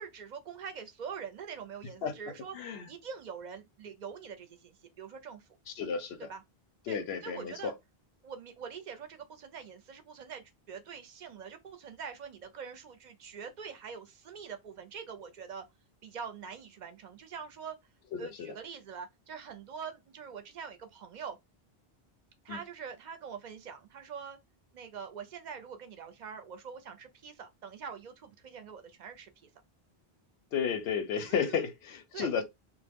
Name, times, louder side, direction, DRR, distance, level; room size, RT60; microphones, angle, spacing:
voice 1, 0.0-5.5 6.3-6.4 6.9-7.7 8.2-15.6 16.0-17.8 18.2-21.4 22.4-24.4 24.7-29.5 31.3-31.7 32.1-32.4, right 6 dB, 55° right, 0.5 m, -44 dB
voice 2, 2.5-2.9 5.8-6.2 6.9-7.7 18.2-18.5 22.5-22.6 30.5-32.4, left 6 dB, 85° left, 0.8 m, -32 dB
2.1 x 2.0 x 3.4 m
omnidirectional pair, 1.0 m